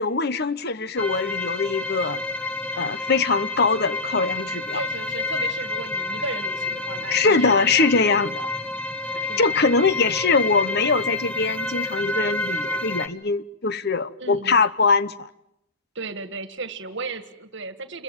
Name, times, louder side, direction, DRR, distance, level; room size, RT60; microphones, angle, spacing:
voice 1, 0.0-2.2 2.8-4.8 7.1-8.5 9.4-15.3, left 4 dB, 50° left, 1.0 m, -22 dB
sound 1, 1.0-13.1, left 2 dB, 5° left, 1.5 m, -29 dB
voice 2, 4.7-7.7 9.2-9.5 14.2-14.6 16.0-18.0, right 3 dB, 60° right, 1.9 m, -35 dB
28.5 x 22.0 x 9.0 m
head